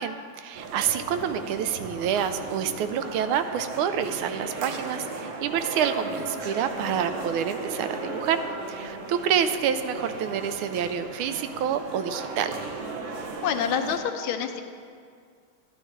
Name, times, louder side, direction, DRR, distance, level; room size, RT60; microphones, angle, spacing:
voice 1, 0.0-12.6, right 8 dB, 90° right, 10 dB, 1.4 m, -28 dB
sound 1, 0.5-14.0, right 3 dB, 55° right, 0.9 m, -36 dB
voice 2, 13.4-14.6, left 8 dB, 90° left, 5 dB, 1.5 m, -27 dB
11.5 x 11.0 x 3.2 m, 2.2 s
omnidirectional pair, 2.3 m